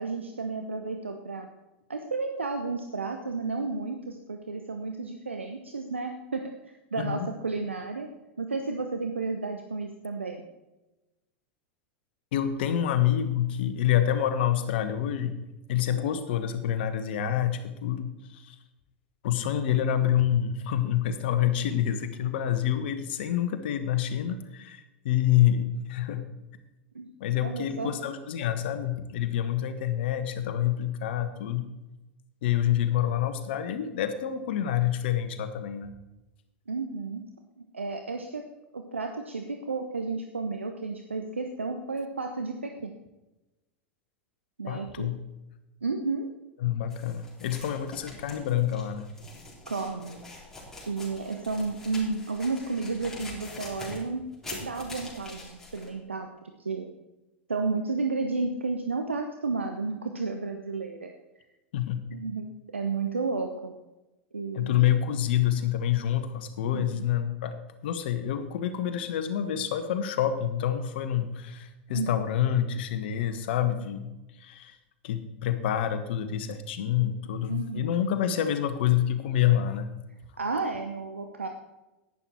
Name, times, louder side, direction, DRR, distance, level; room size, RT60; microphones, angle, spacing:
voice 1, 0.0-1.5 1.9-8.1 8.4-10.5 26.9-27.1 27.4-27.9 36.7-37.2 37.6-38.5 38.7-42.9 44.6-45.1 45.8-46.3 49.7-50.2 50.9-56.3 56.6-56.9 57.5-61.1 62.1-62.5 62.7-63.7 64.3-65.0 66.7-66.8 71.9-72.2 77.5-77.9 80.4-81.5, right 4 dB, 80° right, 5 dB, 0.8 m, -32 dB
voice 2, 7.0-7.3 12.3-15.4 15.7-18.5 19.2-26.2 27.2-31.7 32.4-35.9 44.7-45.2 46.6-49.1 61.7-62.0 64.5-74.1 74.4-74.8 75.0-79.9, left 10 dB, 60° left, 9 dB, 1.2 m, -27 dB
sound 1, 46.9-55.9, left 2 dB, 5° left, 3.7 m, -44 dB
11.0 x 9.9 x 4.4 m, 1.0 s
figure-of-eight pair, 85°, 6 cm